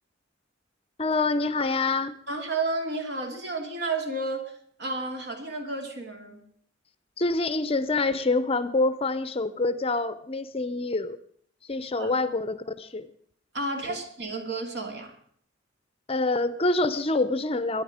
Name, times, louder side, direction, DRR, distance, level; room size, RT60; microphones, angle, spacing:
voice 1, 1.0-2.2 7.2-11.2 11.6-13.1 13.8-14.0 16.1-17.8, left 3 dB, 30° left, 13 dB, 0.6 m, -26 dB
voice 2, 2.3-4.5 4.8-6.5 12.0-12.1 13.5-15.2, right 3 dB, 60° right, 3 dB, 2.7 m, -31 dB
22.0 x 10.0 x 5.0 m, 0.63 s
head